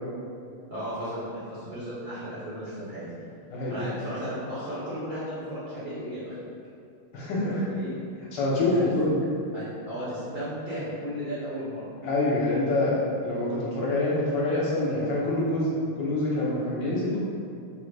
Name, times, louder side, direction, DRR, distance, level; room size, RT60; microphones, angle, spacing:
voice 1, 0.7-3.0 3.7-6.3 7.3-7.9 8.5-8.9 9.5-11.9, equal, 90° right, -12 dB, 0.5 m, -35 dB
voice 2, 7.1-7.8 8.3-9.2 12.0-15.7 16.0-17.2, left 2 dB, 70° left, -6 dB, 1.2 m, -26 dB
3.8 x 2.1 x 3.2 m, 2.5 s
omnidirectional pair, 2.2 m